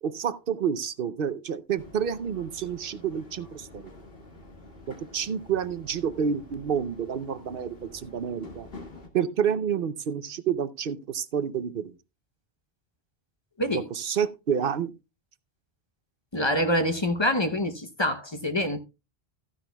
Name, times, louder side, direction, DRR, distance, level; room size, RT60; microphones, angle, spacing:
voice 1, 0.0-3.9 4.9-8.7 9.1-11.9 13.7-14.9, right 7 dB, 65° right, 0.8 m, -29 dB
sound 1, 1.7-9.1, left 2 dB, 65° left, 2.2 m, -48 dB
voice 2, 16.3-18.8, equal, 30° left, 0.8 m, -26 dB
14.0 x 10.0 x 2.2 m
omnidirectional pair, 1.0 m